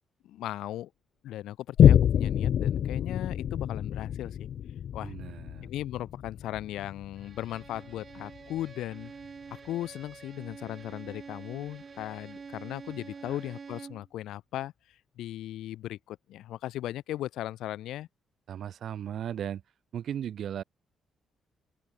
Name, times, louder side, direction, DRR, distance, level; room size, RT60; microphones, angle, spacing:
voice 1, 0.2-0.9 1.2-4.5 4.9-5.1 5.6-9.1 9.5-14.7 15.2-18.1, left 13 dB, 85° left, 5.0 m, -37 dB
Boom, 1.8-8.7 9.2-9.3, left 9 dB, 65° left, 0.6 m, -26 dB
voice 2, 5.0-5.7 13.2-13.4 18.5-19.6 19.9-20.6, right 9 dB, 65° right, 5.3 m, -36 dB
Bowed string instrument, 7.2-14.1, right 5 dB, 40° right, 3.8 m, -47 dB
open air
cardioid pair, 90°, 0 cm